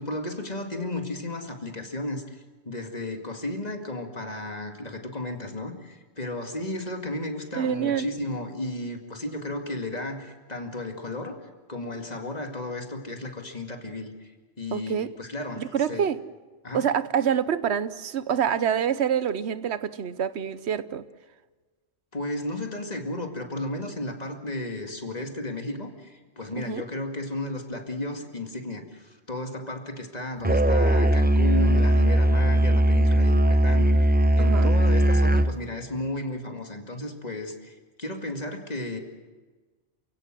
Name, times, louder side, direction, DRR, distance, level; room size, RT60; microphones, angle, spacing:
voice 1, 0.0-11.4 11.7-14.3 14.6-15.6 15.9-16.0 16.6-16.9 22.1-39.0, left 1 dB, 40° left, 4 dB, 2.3 m, -34 dB
voice 2, 7.5-8.1 14.7-15.1 15.6-16.2 16.7-21.0 26.6-26.8 34.4-34.7, right 8 dB, 75° right, 14 dB, 1.1 m, -26 dB
Musical instrument, 30.4-35.6, right 1 dB, 10° right, 0.5 m, -19 dB
29.0 x 16.5 x 7.6 m, 1.3 s
omnidirectional pair, 1.1 m